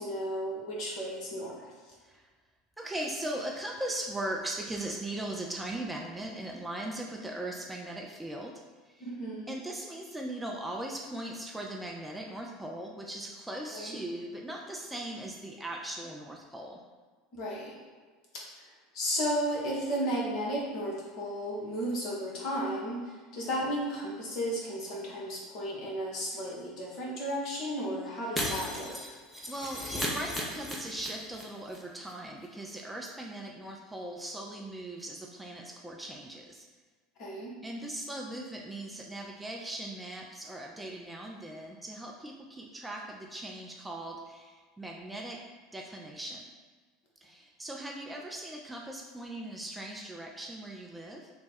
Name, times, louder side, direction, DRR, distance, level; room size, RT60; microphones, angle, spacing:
voice 1, 0.0-1.7 9.0-9.6 13.7-14.0 17.3-17.7 18.3-18.5 18.9-29.0 37.2-37.5, equal, 50° left, -4 dB, 1.2 m, -34 dB
voice 2, 2.8-9.1 9.5-16.8 29.5-36.7 37.6-45.4 45.7-46.5 47.2-51.3, right 1 dB, 10° right, 0 dB, 0.5 m, -39 dB
Shatter, 28.4-31.4 31.7-31.8 32.1-32.2, equal, 10° left, 0.8 m, -35 dB
3.2 x 2.2 x 4.2 m, 1.5 s
figure-of-eight pair, 75°, 0 cm